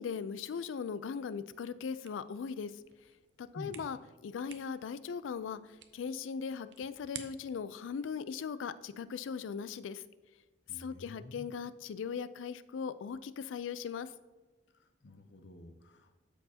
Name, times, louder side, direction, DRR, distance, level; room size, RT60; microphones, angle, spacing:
voice 1, 0.0-2.7 3.4-5.6 5.9-10.0 10.7-14.1, left 6 dB, 90° left, 14 dB, 0.4 m, -39 dB
sound 1, 2.0-7.7, right 9 dB, 70° right, 0.6 m, -53 dB
voice 2, 10.7-11.5 14.7-16.2, left 1 dB, 70° left, 7 dB, 0.8 m, -49 dB
12.5 x 4.5 x 2.8 m, 1.2 s
head